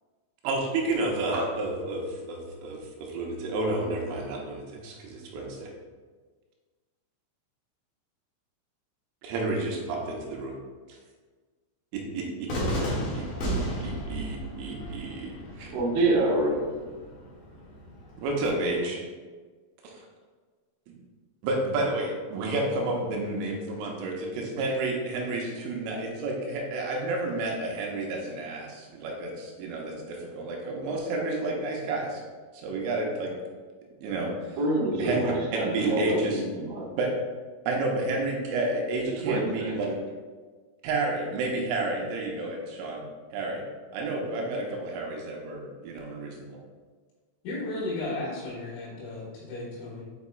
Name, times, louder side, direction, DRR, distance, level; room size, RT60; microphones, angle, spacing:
voice 1, 0.4-5.7 9.2-10.6 10.9-11.0 11.9-12.7 13.1-15.7 18.2-19.0 19.8-20.1 20.9-21.0 21.4-32.2 32.5-33.3 34.0-34.6 35.0-36.4 37.0-37.1 37.7-40.0 40.8-43.0 43.3-43.6 43.9-46.6, right 2 dB, 85° right, -1 dB, 3.2 m, -31 dB
Cheering / Fireworks, 12.5-18.5, equal, 60° left, 3.3 m, -34 dB
voice 2, 15.7-16.7 34.6-36.9 39.2-39.7, right 2 dB, 65° right, -5 dB, 2.2 m, -26 dB
voice 3, 47.4-50.0, left 2 dB, 85° left, -8 dB, 4.5 m, -34 dB
8.1 x 5.3 x 2.3 m, 1.4 s
omnidirectional pair, 5.9 m